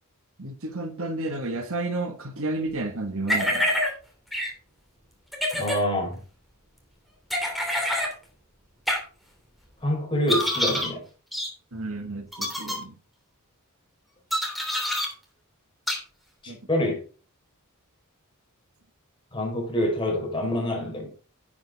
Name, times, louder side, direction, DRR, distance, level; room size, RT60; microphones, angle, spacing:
voice 1, 0.4-3.7 11.7-12.9 16.5-16.6, right 2 dB, 65° right, 1.8 m, -31 dB
sound 1, 3.3-3.9 4.3-4.5 5.3-5.8 7.3-8.1 8.9-9.0 10.3-10.9 11.3-11.5 12.3-12.8 14.3-15.1 15.9-16.0, equal, ahead, 3.0 m, -26 dB
voice 2, 5.5-6.2 9.8-11.0 16.4-17.0 19.3-21.1, left 1 dB, 25° left, 4.6 m, -26 dB
10.5 x 9.0 x 3.6 m
head